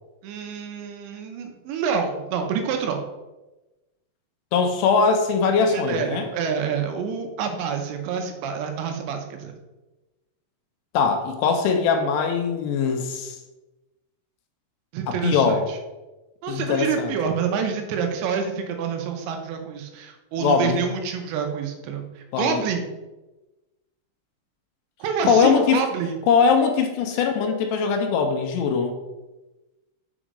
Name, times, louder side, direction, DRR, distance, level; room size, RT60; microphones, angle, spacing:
voice 1, 0.2-3.0 5.7-9.6 14.9-15.8 16.4-22.9 25.0-26.2, right 6 dB, 85° right, 4 dB, 3.1 m, -27 dB
voice 2, 4.5-6.3 10.9-13.4 15.1-15.7 16.5-17.1 20.4-20.8 22.3-22.6 25.3-25.9 26.3-28.9, left 5 dB, 80° left, 5 dB, 2.7 m, -21 dB
7.2 x 5.0 x 4.9 m, 1.1 s
omnidirectional pair, 5.1 m